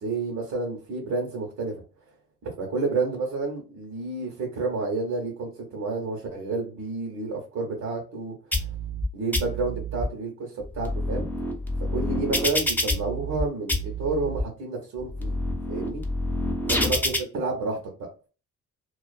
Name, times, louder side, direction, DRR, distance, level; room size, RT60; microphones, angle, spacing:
voice 1, 0.0-1.8 2.4-8.3 9.1-11.3 11.9-15.4 15.7-16.0 16.7-18.3, right 3 dB, 70° right, -1 dB, 0.9 m, -30 dB
sound 1, 8.5-9.0 9.3-10.0 10.6-13.4 13.7-14.4 15.0-17.2, left 1 dB, 5° left, 0.6 m, -28 dB
2.4 x 2.3 x 2.3 m, 0.35 s
cardioid pair, 90°, 30 cm